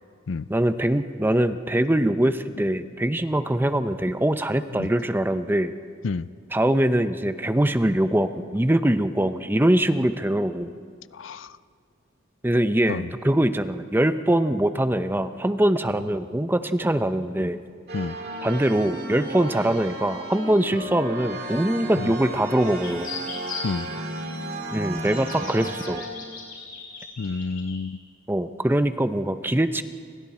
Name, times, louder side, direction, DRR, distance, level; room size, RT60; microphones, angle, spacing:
voice 1, 0.5-5.7 6.5-10.7 12.4-17.6 18.4-23.1 24.7-26.0 28.3-29.8, right 1 dB, 10° right, 10 dB, 0.6 m, -23 dB
voice 2, 11.1-11.5 12.9-13.1 17.9-18.1 22.0-22.1 23.6-23.9 27.2-28.0, left 4 dB, 70° left, 16 dB, 0.5 m, -29 dB
sound 1, 17.9-26.1, right 1 dB, 50° right, 2.3 m, -34 dB
sound 2, 20.3-21.9 22.6-23.7 24.4-27.8, left 5 dB, 45° left, 5.5 m, -40 dB
30.0 x 26.0 x 4.3 m, 2.1 s
head